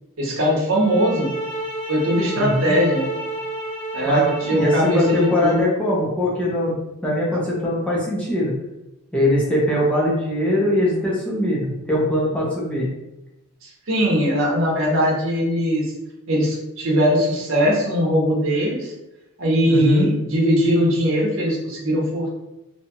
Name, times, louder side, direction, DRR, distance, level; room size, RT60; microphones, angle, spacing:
voice 1, 0.2-1.3 1.9-3.1 3.9-5.7 13.6-15.9 16.3-18.9 19.4-22.4, equal, 60° right, -3 dB, 0.8 m, -20 dB
sound 1, 0.7-5.7, right 2 dB, 50° left, 0.7 m, -31 dB
voice 2, 2.4-2.8 4.1-6.8 7.0-8.5 9.1-12.9 19.7-20.1, left 1 dB, 5° left, -6 dB, 0.5 m, -21 dB
2.7 x 2.3 x 2.8 m, 0.92 s
head